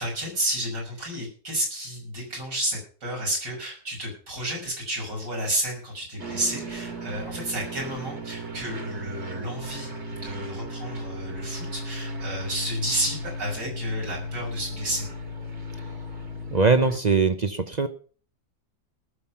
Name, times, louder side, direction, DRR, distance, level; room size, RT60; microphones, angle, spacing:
voice 1, 0.0-15.1, right 1 dB, 80° right, -1 dB, 6.5 m, -31 dB
sound 1, 6.2-17.0, equal, 40° right, 2.3 m, -36 dB
voice 2, 16.5-17.9, right 4 dB, 55° right, 10 dB, 0.4 m, -21 dB
18.5 x 7.5 x 5.6 m, 0.42 s
omnidirectional pair, 1.8 m